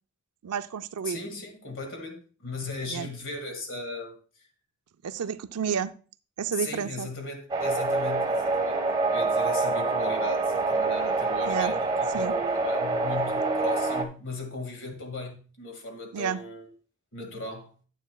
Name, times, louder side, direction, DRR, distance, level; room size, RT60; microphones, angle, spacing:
voice 1, 0.4-1.2 2.9-3.1 5.0-5.9 6.4-7.1 11.4-11.7 12.1-12.3 16.1-16.4, right 7 dB, 90° right, 0.4 m, -30 dB
voice 2, 1.0-4.2 6.6-8.8 9.1-16.7 17.1-17.7, left 2 dB, 60° left, 2.0 m, -37 dB
sound 1, 7.5-14.0, right 3 dB, 20° right, 1.2 m, -26 dB
9.2 x 9.0 x 2.3 m
head